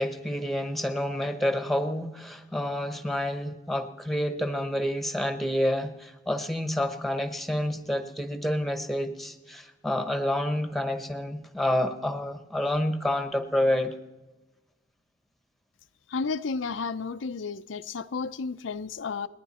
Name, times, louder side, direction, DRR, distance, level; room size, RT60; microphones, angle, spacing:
voice 1, 0.0-13.9, left 1 dB, ahead, 1.1 m, -28 dB
voice 2, 16.1-19.3, left 4 dB, 90° left, 0.6 m, -32 dB
29.5 x 10.5 x 4.3 m
head